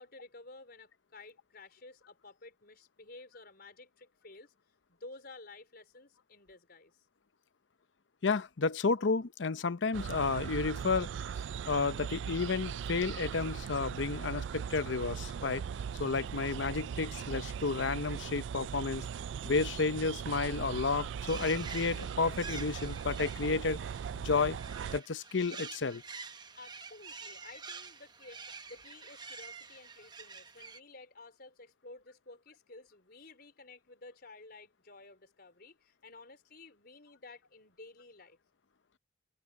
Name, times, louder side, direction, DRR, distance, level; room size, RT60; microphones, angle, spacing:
voice 1, 0.0-4.5 4.9-6.9 26.6-38.4, left 3 dB, 60° left, 4.6 m, -53 dB
voice 2, 8.2-11.3 11.7-15.6 16.0-19.0 19.4-23.8 24.1-24.6 24.9-26.0, left 4 dB, 85° left, 0.7 m, -31 dB
sound 1, 9.9-25.0, right 7 dB, 75° right, 0.3 m, -39 dB
sound 2, 21.3-30.8, right 5 dB, 25° right, 1.0 m, -47 dB
open air
head